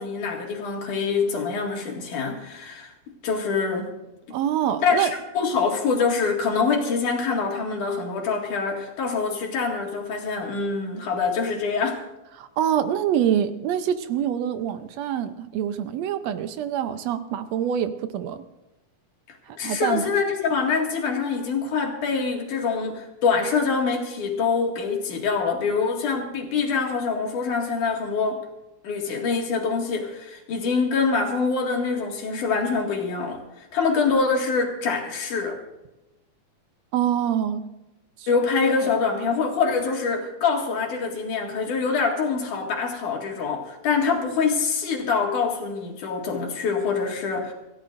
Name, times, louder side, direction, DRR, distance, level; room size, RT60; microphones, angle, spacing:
voice 1, 0.0-2.9 3.2-3.9 4.8-5.1 5.4-12.0 19.3-28.4 28.8-35.6 38.3-47.5, left 5 dB, 75° left, 1 dB, 3.6 m, -25 dB
voice 2, 4.3-5.1 12.3-18.4 19.5-20.1 36.9-37.6 38.2-38.3 38.8-38.9, right 9 dB, 70° right, 10 dB, 1.7 m, -25 dB
26.5 x 14.5 x 2.6 m, 0.99 s
omnidirectional pair, 3.6 m